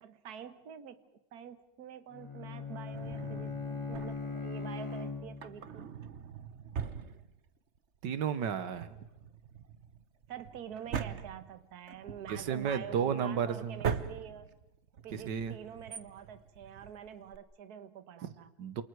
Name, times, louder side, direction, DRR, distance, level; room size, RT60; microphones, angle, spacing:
voice 1, 0.0-1.0 1.3-5.9 10.3-14.5 15.0-18.5, right 8 dB, 65° right, 11 dB, 1.6 m, -47 dB
Bowed string instrument, 2.1-5.7, left 4 dB, 15° left, 2.5 m, -39 dB
Drawer open or close, 2.9-4.4 5.3-7.8 8.0-8.1 8.6-17.4, right 7 dB, 50° right, 1.1 m, -42 dB
voice 2, 8.0-9.0 12.3-13.8 15.1-15.5 18.2-18.3 18.6-18.8, right 7 dB, 90° right, 12 dB, 1.8 m, -33 dB
28.0 x 28.0 x 4.7 m, 0.93 s
omnidirectional pair, 1.8 m